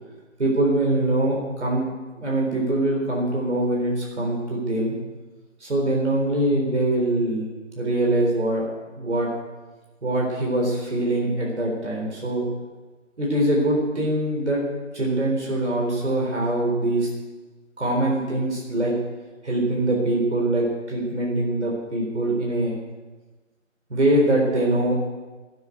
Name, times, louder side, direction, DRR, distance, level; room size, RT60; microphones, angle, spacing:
voice 1, 0.4-1.9 2.2-5.0 5.6-7.5 7.8-8.6 9.0-9.3 10.0-12.5 13.2-14.6 14.9-17.1 17.8-18.9 19.4-22.7 23.9-24.9, right 1 dB, 60° right, -2 dB, 4.1 m, -23 dB
11.0 x 9.6 x 9.4 m, 1.2 s
figure-of-eight pair, 155°, 38 cm